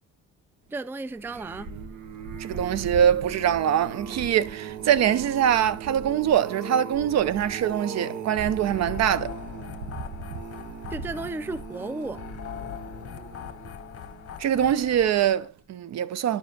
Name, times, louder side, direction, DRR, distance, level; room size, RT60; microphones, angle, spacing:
voice 1, 0.7-1.7 10.9-12.2, right 3 dB, 5° right, 0.3 m, -34 dB
sound 1, 1.1-14.5 15.0-15.3 15.6-15.7, right 5 dB, 75° right, 1.1 m, -38 dB
voice 2, 2.4-9.3 14.4-16.4, right 10 dB, 60° right, 0.6 m, -23 dB
sound 2, 8.6-15.5, left 9 dB, 50° left, 0.9 m, -41 dB
10.0 x 5.1 x 2.8 m
cardioid pair, 90°, 30 cm